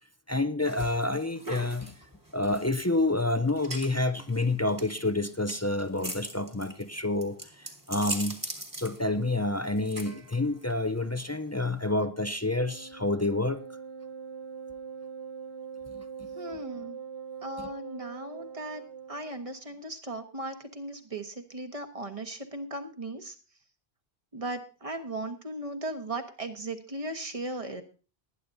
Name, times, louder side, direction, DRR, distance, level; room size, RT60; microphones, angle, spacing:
voice 1, 0.3-1.9 2.3-8.4 8.8-13.6 15.9-16.3 17.6-17.7, left 2 dB, 25° left, 0.4 m, -28 dB
sound 1, 0.6-11.9, right 1 dB, 20° right, 1.6 m, -42 dB
Wind instrument woodwind instrument, 12.4-19.4, right 6 dB, 85° right, 1.3 m, -42 dB
voice 2, 16.3-17.0 17.4-18.8 19.1-23.3 24.3-27.8, right 2 dB, 35° right, 1.4 m, -37 dB
19.5 x 10.5 x 2.7 m
omnidirectional pair, 1.0 m